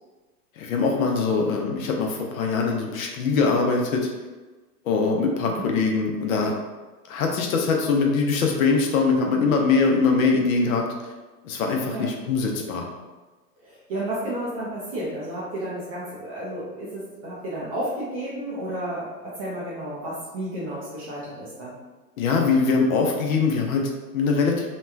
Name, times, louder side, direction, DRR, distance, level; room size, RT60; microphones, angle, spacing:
voice 1, 0.6-4.1 4.8-6.5 7.1-11.1 11.4-12.9 22.2-24.7, left 4 dB, 55° left, 1 dB, 0.6 m, -22 dB
voice 2, 13.6-21.8, right 1 dB, 25° right, -8 dB, 0.3 m, -32 dB
3.0 x 2.2 x 2.3 m, 1.2 s
hypercardioid pair, 115°, 49 cm